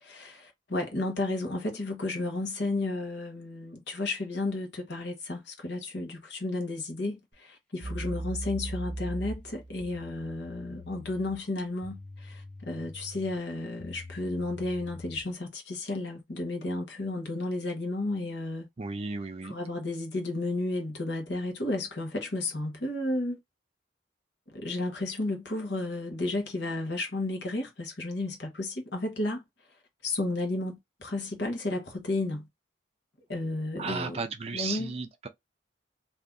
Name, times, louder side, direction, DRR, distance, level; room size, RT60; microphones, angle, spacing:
voice 1, 0.0-18.7 19.4-23.4 24.5-29.4 30.0-32.5 33.3-34.2 34.5-34.9, left 2 dB, 65° left, 1.1 m, -33 dB
sound 1, 7.3-7.4 7.8-15.3, right 1 dB, 5° left, 0.9 m, -41 dB
voice 2, 18.8-19.6 33.8-35.3, right 4 dB, 30° right, 0.4 m, -34 dB
2.8 x 2.5 x 3.5 m
head